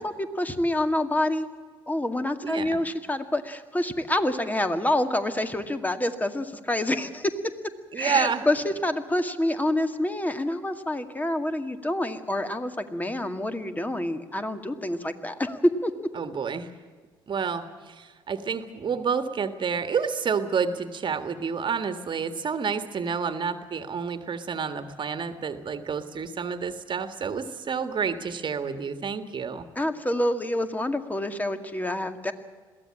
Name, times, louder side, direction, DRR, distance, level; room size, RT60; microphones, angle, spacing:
voice 1, 0.0-1.5 1.9-7.3 7.9-15.9 29.8-32.3, left 1 dB, 15° left, 8 dB, 2.2 m, -27 dB
voice 2, 2.4-2.8 7.9-8.5 16.2-16.7 17.3-29.7, right 6 dB, 45° right, 9 dB, 1.8 m, -29 dB
22.0 x 16.0 x 8.8 m, 1.5 s
hypercardioid pair, 50°, 11 cm